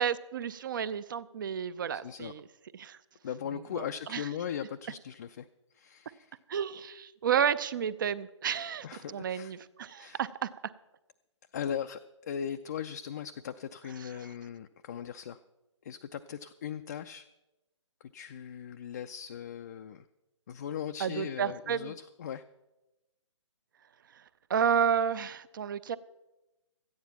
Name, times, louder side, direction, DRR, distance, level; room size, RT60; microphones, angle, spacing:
voice 1, 0.0-2.4 2.7-3.0 3.8-3.9 4.1-4.2 6.5-10.7 21.0-21.9 24.1-24.2 24.5-26.0, right 8 dB, 40° right, 17 dB, 0.5 m, -31 dB
voice 2, 1.9-2.3 3.2-5.5 5.7-6.3 8.8-9.5 9.9-10.2 11.5-15.4 15.8-17.3 18.0-20.1 20.5-22.4, left 8 dB, 35° left, 8 dB, 0.3 m, -39 dB
13.5 x 9.5 x 5.8 m, 1.0 s
figure-of-eight pair, 140°, 16 cm